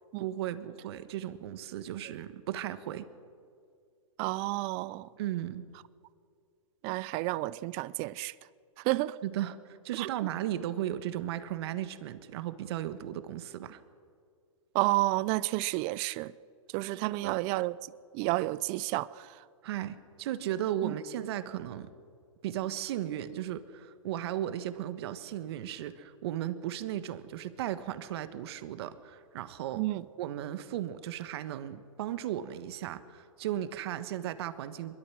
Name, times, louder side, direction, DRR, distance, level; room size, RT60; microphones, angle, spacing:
voice 1, 0.2-3.1 5.2-5.7 9.2-13.8 16.9-17.4 19.6-21.9 22.4-29.8 30.2-35.0, right 12 dB, 50° right, 1.4 m, -36 dB
voice 2, 4.2-5.1 6.8-8.3 8.8-9.2 10.0-10.1 14.7-16.3 16.7-17.7 18.1-19.3 20.8-20.9 29.8-30.0, right 19 dB, 30° right, 0.6 m, -30 dB
23.5 x 22.0 x 6.2 m
hypercardioid pair, 130°, 17 cm